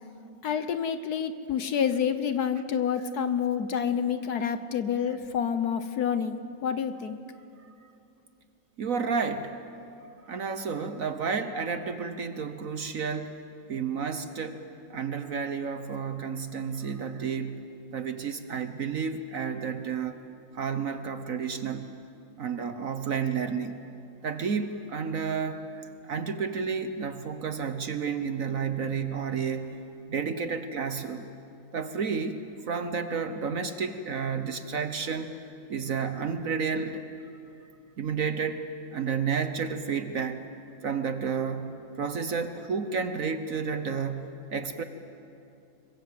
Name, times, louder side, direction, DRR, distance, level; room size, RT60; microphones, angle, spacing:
voice 1, 0.4-7.2, left 7 dB, 60° left, 11 dB, 1.3 m, -28 dB
voice 2, 8.8-9.5 10.3-13.4 13.7-14.6 14.9-17.6 17.9-20.2 20.5-21.9 22.4-23.8 24.2-29.7 30.1-31.3 31.7-32.4 32.7-35.3 35.7-37.0 38.0-40.4 40.8-44.8, right 6 dB, 55° right, 9 dB, 1.2 m, -31 dB
26.0 x 23.0 x 7.8 m, 2.7 s
omnidirectional pair, 2.0 m